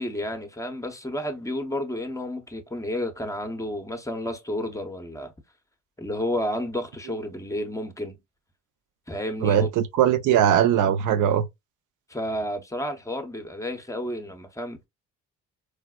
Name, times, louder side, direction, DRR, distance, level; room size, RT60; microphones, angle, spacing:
voice 1, 0.0-5.3 6.0-8.2 9.1-9.7 12.1-14.9, left 1 dB, 10° left, 0.7 m, -31 dB
voice 2, 9.4-11.5, right 10 dB, 85° right, 0.6 m, -20 dB
4.8 x 2.0 x 2.2 m
cardioid pair, 90°, 30 cm